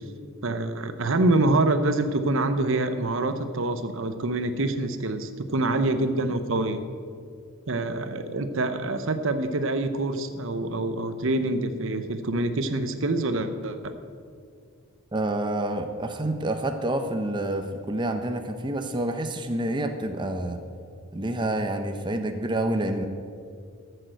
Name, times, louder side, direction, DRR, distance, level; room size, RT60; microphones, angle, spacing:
voice 1, 0.4-6.8 7.7-13.9, right 2 dB, 65° right, 9 dB, 0.8 m, -26 dB
voice 2, 15.1-20.6 21.1-23.1, right 1 dB, 20° right, 6 dB, 0.6 m, -28 dB
13.5 x 6.6 x 7.7 m, 2.2 s
head